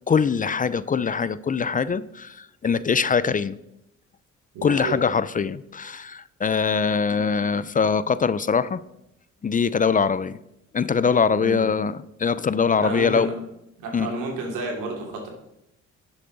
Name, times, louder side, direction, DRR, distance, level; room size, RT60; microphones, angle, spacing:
voice 1, 0.1-3.6 4.6-8.8 9.4-10.4 10.7-13.3 13.9-14.1, left 5 dB, 30° left, 17 dB, 0.4 m, -23 dB
voice 2, 4.5-5.0 11.4-11.7 12.8-13.3 13.8-15.3, right 2 dB, 90° right, 1 dB, 2.9 m, -30 dB
11.0 x 7.3 x 4.0 m, 0.83 s
cardioid pair, 90°, 30 cm